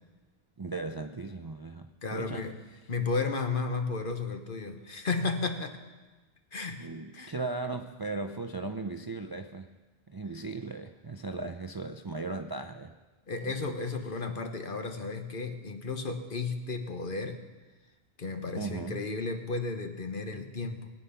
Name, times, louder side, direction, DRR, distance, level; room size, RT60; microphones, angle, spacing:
voice 1, 0.6-1.9 2.1-2.5 6.8-9.7 10.1-12.9 13.5-13.6 18.6-19.0, right 3 dB, 35° right, 6 dB, 0.4 m, -37 dB
voice 2, 2.0-2.6 2.9-5.8 6.5-7.3 13.3-17.4 18.2-20.9, left 4 dB, 55° left, 6 dB, 1.3 m, -33 dB
20.5 x 8.8 x 5.7 m, 1.2 s
omnidirectional pair, 1.1 m